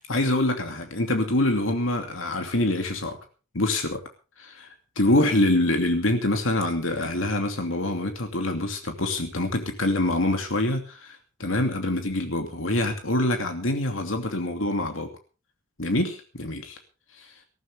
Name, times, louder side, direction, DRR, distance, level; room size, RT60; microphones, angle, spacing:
voice 1, 0.0-3.2 3.5-4.0 4.4-4.7 5.0-15.1 15.8-16.8 17.2-17.3, left 1 dB, 75° left, 5 dB, 2.7 m, -25 dB
20.0 x 14.5 x 3.6 m, 0.34 s
head